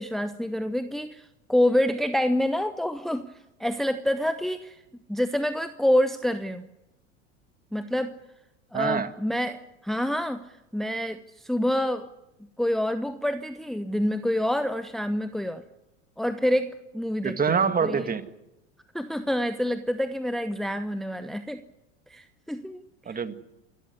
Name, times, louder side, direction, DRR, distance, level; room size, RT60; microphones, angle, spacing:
voice 1, 0.0-3.3 3.6-4.8 5.1-6.7 7.7-8.1 8.7-10.4 10.7-12.1 12.6-15.6 16.2-17.4 17.8-18.1 18.9-21.6 22.1-22.8 23.1-23.2, left 1 dB, ahead, 10 dB, 1.0 m, -27 dB
voice 2, 8.7-9.1 17.2-18.3 23.1-23.3, right 6 dB, 25° right, 10 dB, 2.0 m, -25 dB
28.5 x 13.0 x 9.7 m, 0.94 s
hypercardioid pair, 85°, 37 cm